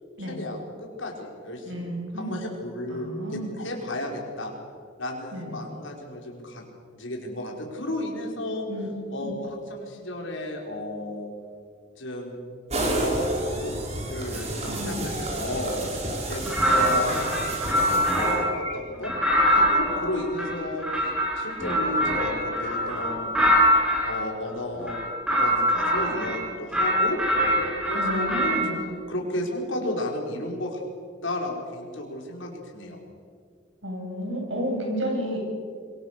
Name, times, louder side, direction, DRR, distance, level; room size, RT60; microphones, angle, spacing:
voice 1, 0.2-4.5 5.0-6.6 6.9-8.7 9.1-11.3 12.0-12.4 13.0-13.8 14.0-15.8 16.3-16.4 16.7-17.2 17.8-19.1 19.5-23.3 24.0-25.0 25.4-27.2 27.8-30.8 31.2-33.0, left 1 dB, 75° left, 0 dB, 5.4 m, -33 dB
voice 2, 1.7-2.4 2.9-3.5 5.3-5.6 8.7-8.9 9.2-9.3 14.6-15.0 27.9-28.8 33.8-35.4, equal, 70° right, 1 dB, 7.8 m, -31 dB
sound 1, 12.7-18.7, right 1 dB, 30° right, 4.1 m, -30 dB
sound 2, 16.5-18.6 19.0-24.1 24.8-26.4 26.7-28.7, equal, 5° right, 6.8 m, -23 dB
26.5 x 23.0 x 6.9 m, 2.1 s
head